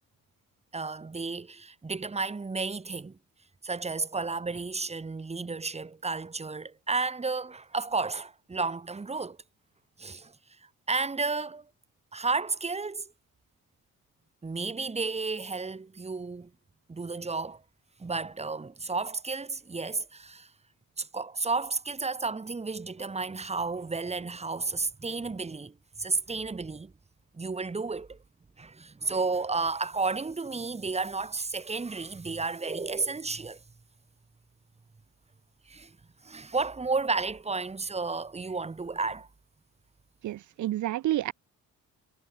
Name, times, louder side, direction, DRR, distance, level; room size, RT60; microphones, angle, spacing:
voice 1, 0.7-3.2 3.6-9.4 10.0-10.3 10.9-11.6 12.1-13.1 14.4-16.5 16.9-17.6 18.0-20.5 21.0-26.9 27.3-28.2 28.6-33.6 35.7-35.9 36.2-39.3, right 4 dB, 20° right, 3.1 m, -32 dB
voice 2, 40.2-41.3, right 14 dB, 65° right, 1.0 m, -29 dB
cardioid pair, 125°, 32 cm